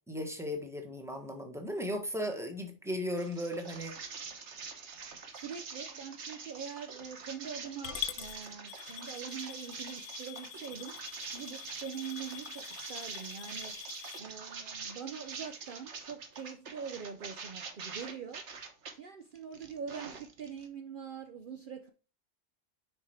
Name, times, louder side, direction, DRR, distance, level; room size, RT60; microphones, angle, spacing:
voice 1, 0.1-4.0, equal, ahead, 1.4 m, -36 dB
sound 1, 3.2-18.9 19.4-20.7, right 5 dB, 75° right, 1.4 m, -45 dB
voice 2, 5.3-18.4 18.9-21.9, right 7 dB, 55° right, 0.7 m, -44 dB
Coin (dropping) / Glass, 7.8-14.2, left 11 dB, 80° left, 1.0 m, -44 dB
6.8 x 5.4 x 4.3 m
omnidirectional pair, 1.2 m